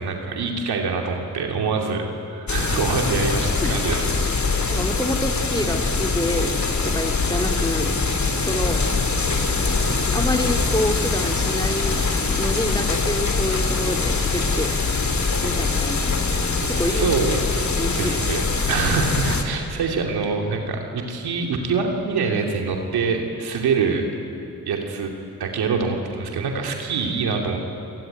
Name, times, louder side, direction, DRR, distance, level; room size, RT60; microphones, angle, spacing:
voice 1, 0.0-4.0 4.4-4.8 16.7-17.5 18.0-24.0 24.7-25.1 25.4-27.6, right 4 dB, 85° right, 2 dB, 2.9 m, -25 dB
sound 1, 2.5-19.4, left 3 dB, 50° left, 3.3 m, -23 dB
voice 2, 4.7-7.9 8.4-8.8 10.1-14.7 15.4-16.1 16.7-17.1 17.8-18.2, left 1 dB, 10° left, 3 dB, 3.1 m, -27 dB
28.5 x 20.5 x 9.3 m, 2.7 s
supercardioid pair, 45°, 37 cm